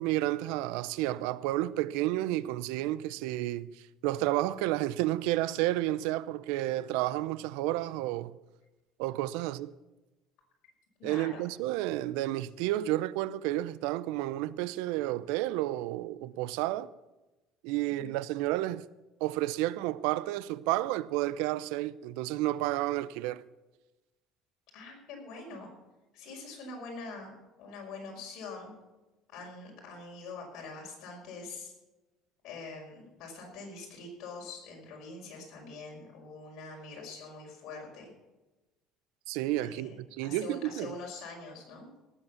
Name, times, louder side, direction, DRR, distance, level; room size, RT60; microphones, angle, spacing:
voice 1, 0.0-3.7 4.0-8.4 9.0-9.7 11.0-16.9 17.6-18.8 19.2-23.4 39.3-40.9, right 16 dB, 90° right, 0.5 m, -31 dB
voice 2, 11.0-11.5 18.0-18.1 24.7-25.7 26.1-27.3 27.6-28.7 29.3-31.7 32.4-38.1 39.6-41.9, left 3 dB, 60° left, 5.4 m, -44 dB
18.0 x 8.2 x 7.1 m
cardioid pair, 145°, 0 cm